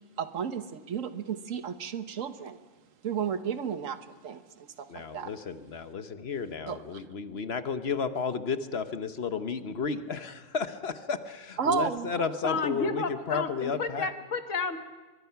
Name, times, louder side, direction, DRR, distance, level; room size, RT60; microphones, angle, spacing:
voice 1, 0.2-2.6 3.0-5.3 6.7-6.8 11.6-12.3, right 6 dB, 80° right, 11 dB, 1.4 m, -33 dB
voice 2, 4.9-14.1, left 5 dB, 55° left, 10 dB, 1.2 m, -33 dB
voice 3, 12.4-14.8, left 4 dB, 75° left, 8 dB, 1.8 m, -31 dB
23.5 x 22.0 x 5.8 m, 1.4 s
omnidirectional pair, 1.3 m